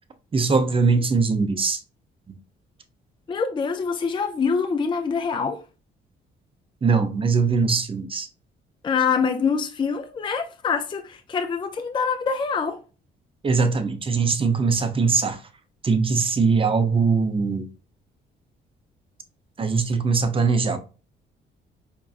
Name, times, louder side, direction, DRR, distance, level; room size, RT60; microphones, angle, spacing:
voice 1, 0.3-1.8 6.8-8.3 13.4-15.4 15.8-17.6 19.6-20.8, right 4 dB, 25° right, 0.6 m, -21 dB
voice 2, 3.3-5.6 8.8-12.8, left 5 dB, 25° left, 0.4 m, -25 dB
4.4 x 2.5 x 2.4 m
cardioid pair, 90°, 20 cm